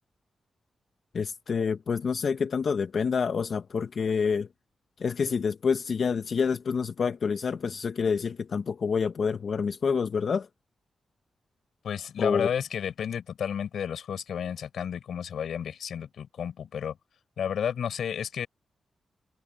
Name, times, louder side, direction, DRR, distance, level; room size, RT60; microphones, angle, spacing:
voice 1, 1.1-4.5 5.0-10.5 12.2-12.5, left 5 dB, 60° left, 0.6 m, -27 dB
voice 2, 11.8-17.0 17.4-18.5, left 8 dB, 85° left, 6.3 m, -32 dB
wide cardioid pair, 110°, 0 cm